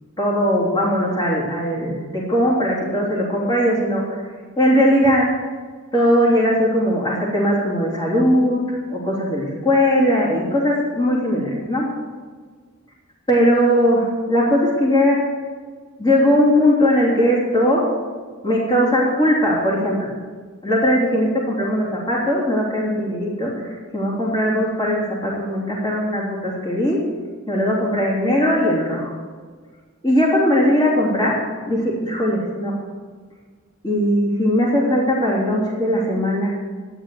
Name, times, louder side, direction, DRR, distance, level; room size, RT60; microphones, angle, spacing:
voice 1, 0.2-4.2 4.6-5.3 5.9-11.9 13.3-15.2 16.0-17.8 18.4-20.1 20.6-27.0 27.5-29.1 30.0-31.3 31.7-32.7 33.8-36.5, equal, 20° left, -5 dB, 3.3 m, -19 dB
12.5 x 9.9 x 7.8 m, 1.5 s
head